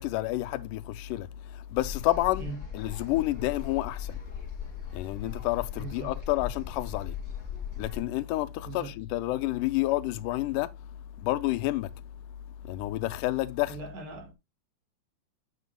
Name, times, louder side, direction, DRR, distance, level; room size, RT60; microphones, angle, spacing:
voice 1, 0.0-4.2 4.9-7.2 7.8-10.7 11.2-11.9 12.7-13.8, left 16 dB, 90° left, 2.1 m, -29 dB
sound 1, 1.8-8.0, left 8 dB, 25° left, 1.4 m, -39 dB
voice 2, 5.8-6.2 8.6-9.0 13.6-14.3, right 4 dB, 65° right, 2.8 m, -40 dB
8.1 x 7.5 x 2.2 m
omnidirectional pair, 3.6 m